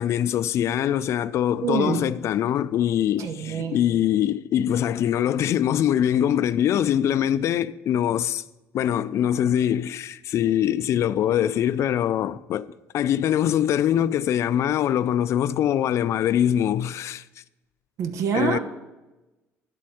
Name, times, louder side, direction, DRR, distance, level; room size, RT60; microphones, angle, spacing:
voice 1, 0.0-8.4 8.7-12.7 12.9-17.2 18.3-18.6, left 10 dB, 60° left, 0.3 m, -23 dB
voice 2, 1.6-2.0 3.2-3.8 18.0-18.6, right 6 dB, 70° right, 1.1 m, -26 dB
10.5 x 4.2 x 7.8 m
cardioid pair, 110°, 5 cm